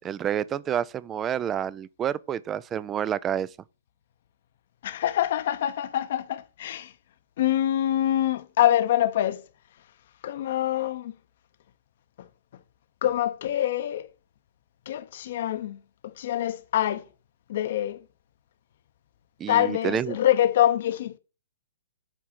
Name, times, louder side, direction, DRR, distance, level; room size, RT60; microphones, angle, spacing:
voice 1, 0.0-3.5 19.4-20.2, right 9 dB, 20° right, 0.3 m, -29 dB
voice 2, 4.8-6.9 7.4-9.4 10.2-11.1 12.2-12.3 13.0-14.1 14.9-17.0 17.5-18.0 19.5-21.2, left 12 dB, 55° left, 0.7 m, -25 dB
9.0 x 3.6 x 5.9 m
hypercardioid pair, 125°, 0 cm